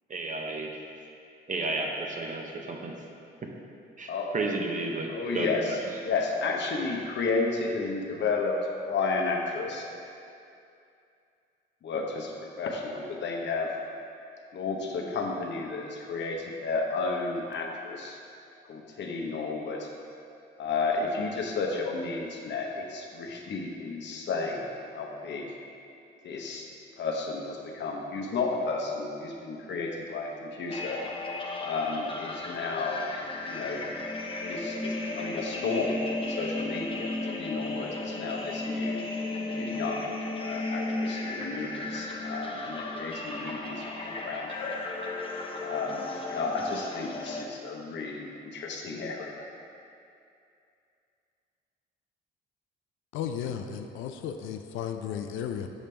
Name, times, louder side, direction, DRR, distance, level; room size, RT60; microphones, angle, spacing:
voice 1, 0.1-0.7 1.5-2.9 4.0-5.8, right 2 dB, 40° right, 1 dB, 0.8 m, -32 dB
voice 2, 5.1-5.8 6.0-8.5 8.9-9.8 11.8-13.7 14.5-18.2 18.7-19.9 20.6-25.5 26.2-26.6 27.0-31.0 31.6-33.0 33.5-33.8 34.4-39.0 39.5-40.1 40.4-44.8 45.6-49.4, left 4 dB, 65° left, 0 dB, 0.9 m, -32 dB
sound 1, 30.7-47.4, left 2 dB, 25° left, 0.7 m, -34 dB
voice 3, 53.1-55.7, left 8 dB, 85° left, 6 dB, 0.4 m, -34 dB
7.2 x 5.2 x 3.3 m, 2.5 s
cardioid pair, 90°, 20 cm